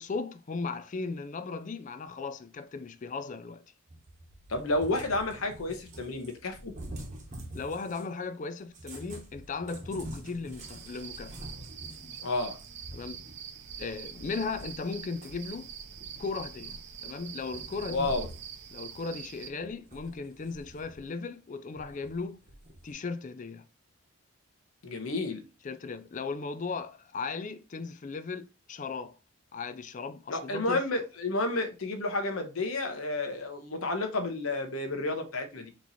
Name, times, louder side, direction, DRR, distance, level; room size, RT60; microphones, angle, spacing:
voice 1, 0.0-3.6 7.5-11.5 12.9-13.2 13.8-15.7 16.2-18.1 18.7-22.4 22.8-23.6 25.6-29.2 29.5-30.8, left 4 dB, 35° left, 0.4 m, -37 dB
Cat, 3.9-8.1 8.7-14.9 15.2-17.1 17.5-18.5 18.9-19.0 19.6-21.1 21.8-22.9, right 1 dB, 35° right, 1.0 m, -46 dB
voice 2, 4.5-6.7 12.2-12.6 17.9-18.3 24.8-25.4 30.3-35.7, left 2 dB, 75° left, 0.9 m, -31 dB
sound 1, 10.6-19.5, right 8 dB, 50° right, 0.5 m, -45 dB
4.4 x 3.0 x 4.0 m
head